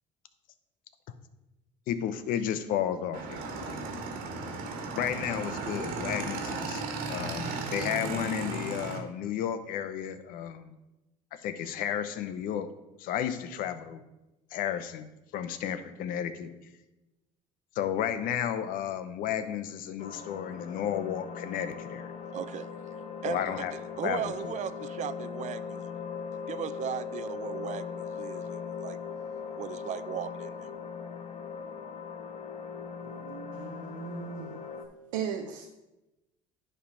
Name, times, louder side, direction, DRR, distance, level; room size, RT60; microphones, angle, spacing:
voice 1, 1.9-3.8 4.9-6.8 7.1-10.7 11.4-12.7 13.0-14.0 14.5-15.1 15.3-16.5 17.8-22.1 23.2-23.7 24.0-24.5, left 9 dB, 65° left, 11 dB, 0.8 m, -32 dB
Motorcycle / Engine, 3.1-9.0, right 3 dB, 70° right, 1.5 m, -35 dB
sound 1, 20.0-34.8, left 6 dB, 45° left, 1.0 m, -40 dB
voice 2, 22.3-22.7 23.2-23.7 24.0-25.9 26.5-29.0 29.5-30.7, right 10 dB, 50° right, 14 dB, 0.5 m, -37 dB
voice 3, 33.0-34.6 35.1-35.7, right 8 dB, 90° right, 3 dB, 0.7 m, -37 dB
10.0 x 3.4 x 5.5 m, 0.99 s
supercardioid pair, 80°, 15 cm